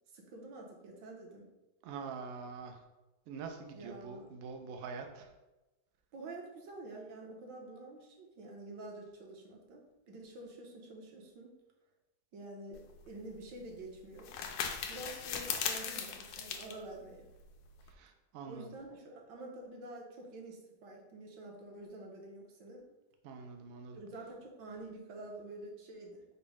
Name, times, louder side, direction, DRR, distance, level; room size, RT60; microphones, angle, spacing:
voice 1, 0.1-1.5 3.7-4.4 6.1-11.5 12.3-14.3 14.9-17.3 18.5-22.9 23.9-26.2, right 2 dB, 70° right, 0 dB, 1.4 m, -48 dB
voice 2, 1.8-2.8 3.3-5.3 17.9-18.7 23.2-24.0, right 5 dB, 90° right, 4 dB, 0.7 m, -45 dB
sound 1, 12.7-17.9, left 7 dB, 75° left, 1.1 m, -40 dB
5.1 x 2.1 x 4.8 m, 1.0 s
omnidirectional pair, 2.1 m